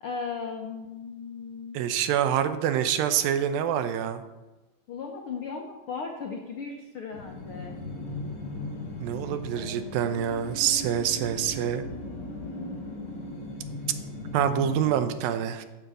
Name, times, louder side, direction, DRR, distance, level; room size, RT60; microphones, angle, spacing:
voice 1, 0.0-1.8 4.9-7.7 9.5-10.2, left 5 dB, 80° left, 1 dB, 1.2 m, -37 dB
voice 2, 1.7-4.2 9.0-11.8 14.3-15.7, right 9 dB, 80° right, 10 dB, 2.5 m, -26 dB
sound 1, 7.1-15.1, left 2 dB, 40° left, 2.0 m, -37 dB
10.0 x 7.0 x 7.8 m, 1.1 s
omnidirectional pair, 4.2 m